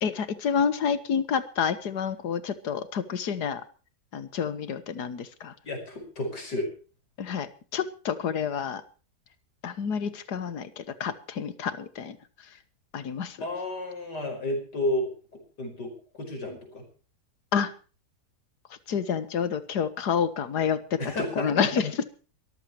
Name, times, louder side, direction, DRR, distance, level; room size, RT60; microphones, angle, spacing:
voice 1, 0.0-3.6 4.1-5.5 7.2-8.8 9.6-12.2 12.9-13.4 17.5-17.7 18.9-21.0 21.4-22.1, left 7 dB, 75° left, 13 dB, 1.9 m, -28 dB
voice 2, 5.6-6.7 13.4-16.8 21.0-21.7, left 1 dB, 90° left, 4 dB, 5.7 m, -32 dB
23.5 x 14.0 x 3.1 m, 0.37 s
omnidirectional pair, 1.8 m